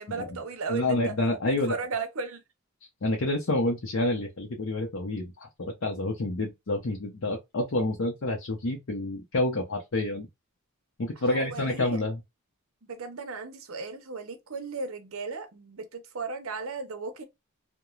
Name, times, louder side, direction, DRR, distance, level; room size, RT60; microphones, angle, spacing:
voice 1, 0.0-1.1 1.5-2.4 11.3-12.0 12.9-17.2, right 4 dB, 70° right, 0.7 m, -36 dB
voice 2, 0.7-1.8 3.0-5.5 5.8-10.3 11.0-12.2, left 2 dB, 60° left, 0.6 m, -28 dB
3.0 x 2.1 x 2.3 m
head